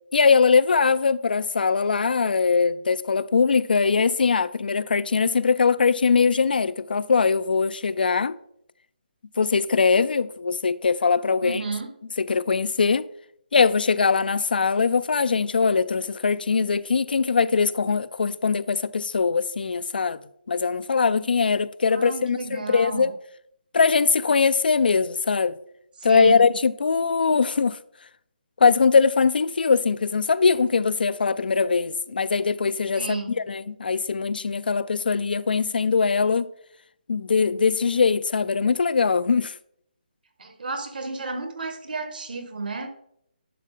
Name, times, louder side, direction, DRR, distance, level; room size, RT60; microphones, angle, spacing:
voice 1, 0.1-8.4 9.4-11.6 12.2-13.1 13.5-20.2 20.5-23.2 23.7-25.6 26.0-27.8 28.6-33.2 33.5-36.5 37.1-39.5, left 5 dB, 75° left, 0.4 m, -21 dB
voice 2, 11.4-11.9 21.9-23.1 26.1-26.5 32.9-33.5 40.4-42.9, right 3 dB, 65° right, 1.5 m, -32 dB
11.0 x 5.3 x 3.8 m
hypercardioid pair, 165°, 5 cm